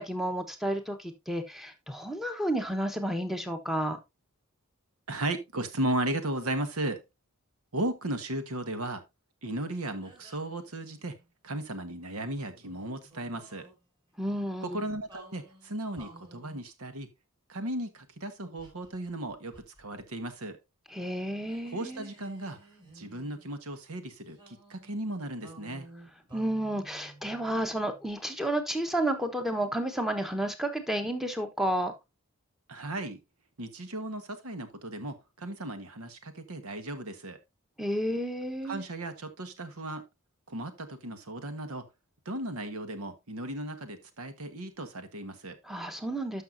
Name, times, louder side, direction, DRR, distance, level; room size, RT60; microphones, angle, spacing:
voice 1, 0.0-4.0 14.2-14.9 20.9-22.1 26.3-31.9 37.8-38.8 45.7-46.4, right 1 dB, ahead, 1.0 m, -31 dB
voice 2, 5.1-7.0 7.7-9.0 9.4-11.2 11.4-13.7 14.6-17.1 17.5-20.6 21.6-22.6 22.9-25.9 32.7-33.2 33.6-37.4 38.6-40.0 40.5-41.9 42.2-45.6, right 1 dB, 85° right, 1.3 m, -35 dB
sound 1, 10.0-11.3 12.3-13.8 15.1-16.7 18.6-20.0 20.3-20.5 21.4-23.5 24.3-28.1, right 2 dB, 20° right, 4.3 m, -54 dB
12.5 x 5.8 x 2.6 m
head